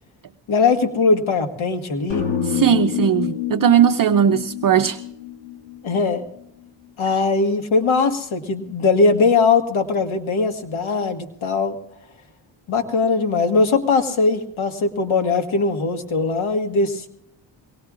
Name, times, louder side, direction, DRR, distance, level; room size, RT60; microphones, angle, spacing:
voice 1, 0.5-2.3 5.8-6.2 7.0-11.8 12.7-17.1, left 4 dB, 80° left, 6 dB, 1.8 m, -20 dB
sound 1, 2.1-6.2, left 9 dB, 60° left, 2.7 m, -27 dB
voice 2, 2.4-5.0, right 9 dB, 45° right, 8 dB, 0.6 m, -18 dB
23.0 x 19.0 x 2.5 m, 0.77 s
cardioid pair, 80°, 48 cm